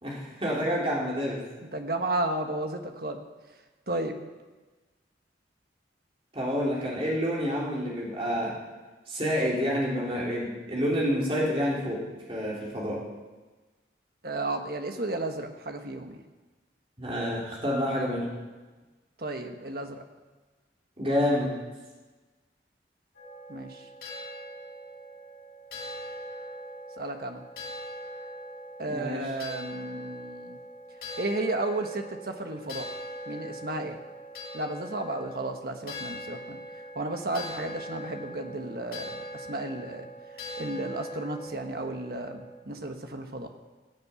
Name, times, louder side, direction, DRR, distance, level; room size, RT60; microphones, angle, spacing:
voice 1, 0.0-1.4 6.3-8.6 9.1-12.0 12.3-13.0 17.0-18.3 21.0-21.5 28.9-29.2, equal, 30° right, -4 dB, 3.8 m, -28 dB
voice 2, 1.7-3.2 3.9-4.1 14.2-16.2 19.2-20.0 23.5-23.8 27.0-27.4 28.8-30.6 31.2-32.9 33.3-34.0 34.5-36.6 36.9-40.1 40.6-43.5, right 2 dB, 55° right, 5 dB, 1.4 m, -33 dB
sound 1, 23.1-42.5, equal, 55° left, 5.5 m, -41 dB
17.0 x 7.8 x 8.4 m, 1.3 s
head